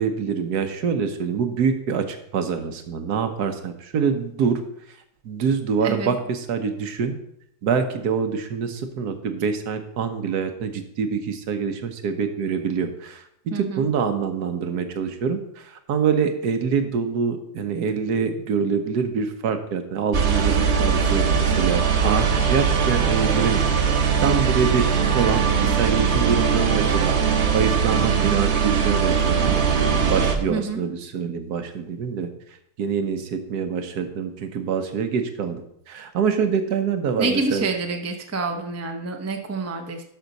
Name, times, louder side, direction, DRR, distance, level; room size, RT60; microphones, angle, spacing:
voice 1, 0.0-4.6 5.2-7.2 7.6-23.6 24.2-27.2 27.5-29.5 30.1-32.3 32.8-37.7, right 6 dB, 75° right, 7 dB, 1.4 m, -25 dB
voice 2, 13.5-13.9 28.2-28.4 30.5-30.8 37.2-40.0, right 3 dB, 20° right, 4 dB, 0.5 m, -27 dB
sound 1, 20.1-30.3, right 6 dB, 50° right, 1.1 m, -20 dB
11.5 x 5.6 x 4.0 m, 0.76 s
omnidirectional pair, 1.7 m